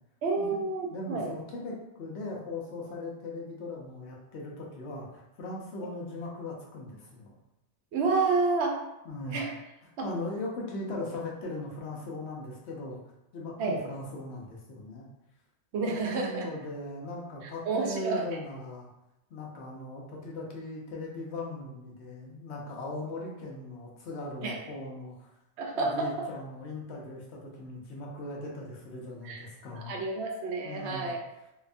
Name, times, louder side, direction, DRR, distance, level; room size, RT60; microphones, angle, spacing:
voice 1, 0.2-1.3 7.9-8.8 9.3-9.5 10.0-10.1 13.6-13.8 15.7-16.5 17.7-18.2 24.4-24.6 25.6-26.1 29.2-29.4 29.7-31.2, right 3 dB, 80° right, 0 dB, 0.9 m, -29 dB
voice 2, 0.9-7.3 9.0-9.4 10.0-13.0 13.3-15.1 15.9-18.9 19.3-25.3 25.7-30.0 30.6-31.1, left 2 dB, 90° left, -2 dB, 0.9 m, -39 dB
2.7 x 2.2 x 2.5 m, 0.89 s
omnidirectional pair, 1.1 m